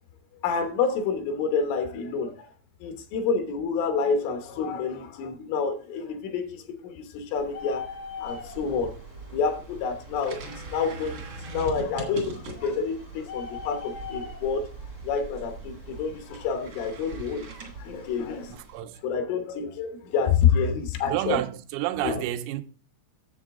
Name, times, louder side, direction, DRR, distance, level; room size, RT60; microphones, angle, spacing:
voice 1, 0.4-2.5 2.8-7.9 8.2-8.9 9.3-11.2 11.5-14.7 15.0-18.6 19.0-21.4 22.0-22.2, left 6 dB, 80° left, 3.6 m, -28 dB
Bird, 7.4-18.5, left 5 dB, 55° left, 1.2 m, -43 dB
sound 1, 8.3-18.8, right 3 dB, 60° right, 1.4 m, -42 dB
voice 2, 18.5-19.0 21.1-22.6, right 14 dB, 90° right, 3.3 m, -30 dB
10.0 x 7.2 x 3.6 m
omnidirectional pair, 5.7 m